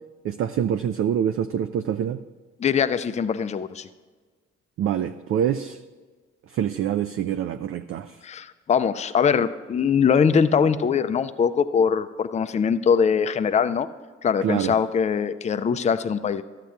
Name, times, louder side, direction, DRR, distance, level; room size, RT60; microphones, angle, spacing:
voice 1, 0.2-2.2 4.8-5.8 6.5-8.2 14.4-14.7, right 9 dB, 40° right, 10 dB, 0.4 m, -25 dB
voice 2, 2.6-3.9 8.2-13.9 14.2-16.4, left 6 dB, 20° left, 12 dB, 0.4 m, -22 dB
14.0 x 7.5 x 2.3 m, 1.4 s
figure-of-eight pair, 45°, 35 cm